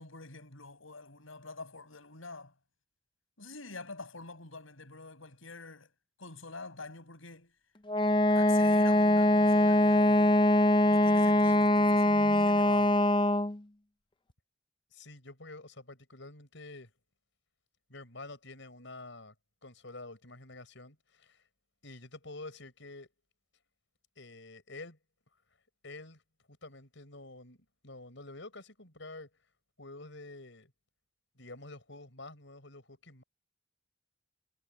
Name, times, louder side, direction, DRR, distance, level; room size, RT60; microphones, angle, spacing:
voice 1, 0.0-2.5 3.4-5.9 6.2-7.5 8.3-10.4 10.8-13.0, left 3 dB, 80° left, 5.8 m, -46 dB
Wind instrument woodwind instrument, 7.9-13.6, left 1 dB, 25° left, 0.6 m, -23 dB
voice 2, 14.9-16.9 17.9-19.3 19.6-21.4 21.8-23.1 24.2-25.0 25.8-26.2 26.6-29.3 29.8-30.7 31.4-33.2, left 2 dB, 65° left, 6.5 m, -48 dB
head